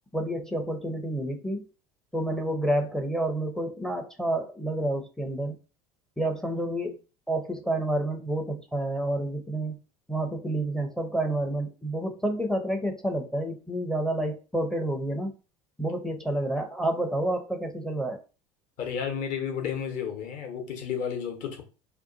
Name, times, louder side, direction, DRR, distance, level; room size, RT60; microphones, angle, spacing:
voice 1, 0.1-1.7 2.1-5.6 6.2-7.0 7.3-9.8 10.1-15.3 15.8-18.2, right 1 dB, 5° left, 0.5 m, -29 dB
voice 2, 18.8-21.6, left 7 dB, 45° left, 0.8 m, -32 dB
2.5 x 2.2 x 2.5 m
figure-of-eight pair, 70°, 18 cm